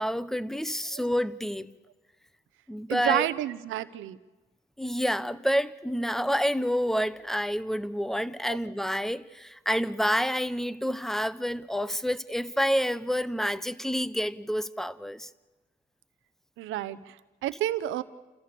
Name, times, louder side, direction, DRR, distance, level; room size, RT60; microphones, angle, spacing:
voice 1, 0.0-1.7 2.7-3.3 4.8-15.3, equal, ahead, 0.8 m, -28 dB
voice 2, 2.9-4.2 8.5-8.6 16.6-18.0, right 13 dB, 90° right, 0.9 m, -30 dB
29.0 x 14.5 x 6.9 m
cardioid pair, 90°, 20 cm